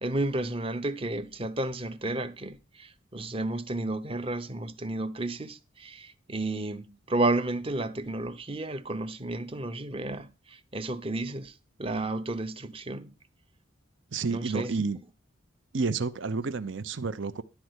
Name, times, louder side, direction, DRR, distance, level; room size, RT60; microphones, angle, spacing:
voice 1, 0.0-13.1 14.3-14.8, right 2 dB, 25° right, 0.8 m, -32 dB
voice 2, 14.1-15.0 15.7-17.4, right 4 dB, 65° right, 0.7 m, -30 dB
11.5 x 4.4 x 8.1 m
head